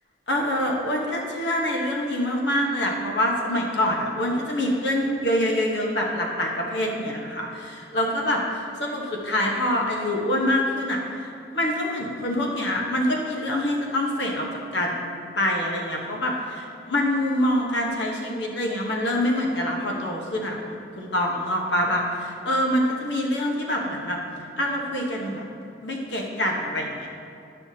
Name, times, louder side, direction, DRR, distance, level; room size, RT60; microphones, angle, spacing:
voice 1, 0.3-11.3 11.5-14.5 14.7-15.0 15.4-24.2 24.6-25.4 25.8-27.1, left 1 dB, 75° left, -1 dB, 1.1 m, -25 dB
11.0 x 5.6 x 2.8 m, 2.5 s
head